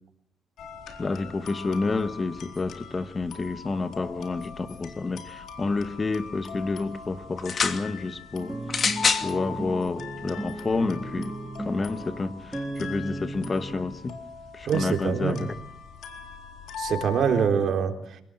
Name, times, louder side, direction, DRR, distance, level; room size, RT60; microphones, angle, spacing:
sound 1, 0.6-17.5, left 6 dB, 70° left, 4.0 m, -41 dB
voice 1, 1.0-8.6 9.2-11.3 11.6-14.2 14.5-15.5, left 3 dB, 30° left, 1.7 m, -29 dB
sound 2, 7.4-7.8 8.7-9.3 10.2-10.3, left 5 dB, 45° left, 2.6 m, -24 dB
sound 3, 8.4-13.8, right 2 dB, 15° right, 3.2 m, -36 dB
voice 2, 14.7-15.5 16.8-18.2, right 7 dB, 65° right, 3.8 m, -25 dB
27.0 x 18.5 x 7.8 m
cardioid pair, 90°, 0 cm